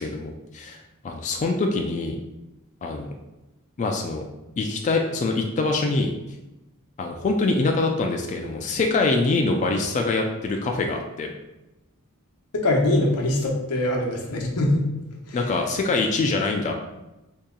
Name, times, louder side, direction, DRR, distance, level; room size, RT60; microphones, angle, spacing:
voice 1, 0.0-2.2 2.8-3.1 3.8-4.3 4.6-6.1 7.0-11.3 15.3-16.7, left 3 dB, 35° left, 2 dB, 0.3 m, -24 dB
voice 2, 12.6-14.8 15.3-15.4, left 1 dB, 85° left, 0 dB, 0.8 m, -22 dB
3.0 x 2.8 x 3.6 m, 0.98 s
head